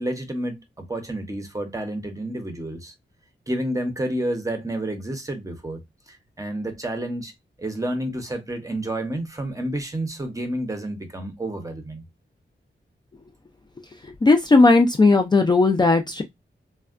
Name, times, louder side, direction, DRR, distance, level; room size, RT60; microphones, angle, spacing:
voice 1, 0.0-2.9 3.5-5.8 6.1-7.3 7.6-12.0, right 1 dB, 15° right, 0.6 m, -30 dB
voice 2, 14.2-16.2, left 3 dB, 25° left, 0.3 m, -16 dB
3.4 x 2.1 x 2.4 m
wide cardioid pair, 125°, 19 cm